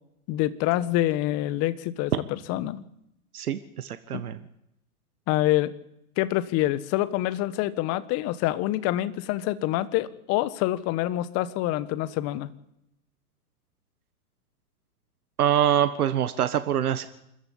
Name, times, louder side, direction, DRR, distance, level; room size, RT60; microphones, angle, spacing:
voice 1, 0.3-2.8 4.1-4.2 5.3-5.7 6.2-12.5, left 15 dB, 35° left, 16 dB, 1.3 m, -26 dB
voice 2, 3.3-4.4 15.4-17.1, right 10 dB, 80° right, 11 dB, 1.5 m, -24 dB
26.0 x 14.5 x 8.7 m, 0.82 s
hypercardioid pair, 125°, 44 cm